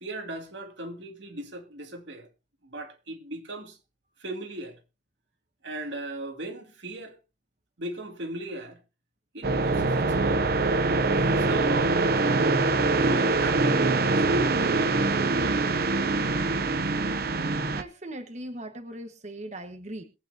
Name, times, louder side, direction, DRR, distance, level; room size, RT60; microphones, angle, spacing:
voice 1, 0.0-2.3 2.6-3.8 4.2-4.8 5.6-7.2 7.8-8.8 9.3-10.6 11.1-12.2 12.9-15.0 15.4-15.9, right 1 dB, 85° right, 2.4 m, -37 dB
sound 1, 9.4-17.8, right 3 dB, 55° right, 0.7 m, -24 dB
voice 2, 17.3-20.0, right 1 dB, 40° right, 1.4 m, -40 dB
22.0 x 8.9 x 2.7 m
head